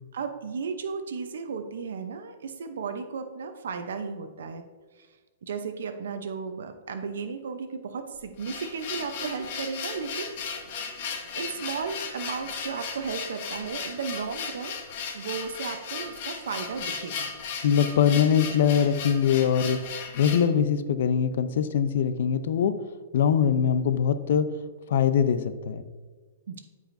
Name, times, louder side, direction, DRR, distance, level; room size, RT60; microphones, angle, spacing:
voice 1, 0.1-4.6 5.0-5.1 5.4-10.7 11.2-14.7 15.1-17.3 18.1-18.6 26.5-26.6, right 5 dB, 90° right, 7 dB, 0.7 m, -34 dB
sound 1, 8.1-20.5, left 6 dB, 45° left, 1.1 m, -36 dB
voice 2, 17.6-19.8 20.2-22.7 23.1-24.5 24.9-25.8, left 8 dB, 60° left, 11 dB, 0.5 m, -22 dB
13.0 x 4.9 x 2.6 m, 1.4 s
hypercardioid pair, 165°, 0 cm